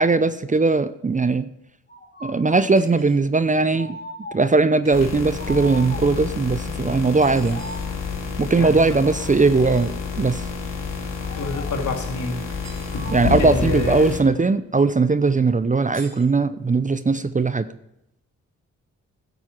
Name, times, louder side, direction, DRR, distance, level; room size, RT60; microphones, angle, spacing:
voice 1, 0.0-1.5 2.2-4.0 4.3-7.6 8.4-10.5 13.1-17.7, right 3 dB, 25° right, 14 dB, 0.6 m, -19 dB
sound 1, 1.9-2.7 3.7-4.6 5.4-6.3 7.1-8.0 8.9-9.6 11.2-11.9 12.9-13.6, left 1 dB, 30° left, 2.9 m, -39 dB
sound 2, 2.7-3.2 4.8-5.1 7.2-7.8 9.6-9.9 12.5-13.0 15.9-16.3, right 3 dB, 55° right, 4.1 m, -46 dB
sound 3, 4.9-14.2, left 5 dB, 80° left, 2.3 m, -29 dB
voice 2, 11.3-12.4 12.9-14.1, left 3 dB, 65° left, 3 dB, 2.2 m, -28 dB
10.5 x 8.2 x 4.5 m, 0.81 s
supercardioid pair, 45°, 32 cm